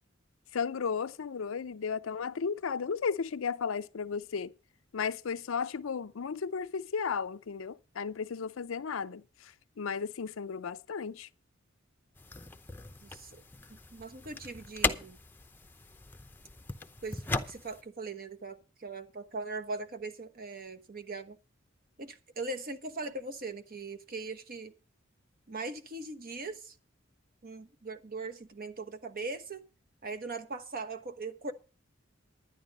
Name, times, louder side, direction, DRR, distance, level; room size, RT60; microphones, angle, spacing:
voice 1, 0.5-4.5 4.9-11.3, left 6 dB, 80° left, 0.5 m, -34 dB
sound 1, 12.2-17.8, left 3 dB, 10° left, 0.7 m, -37 dB
voice 2, 13.0-13.4 13.7-15.2 17.0-21.4 22.0-24.7 25.5-26.7 27.4-29.6 30.0-31.5, right 3 dB, 45° right, 1.1 m, -40 dB
11.0 x 10.0 x 5.3 m
head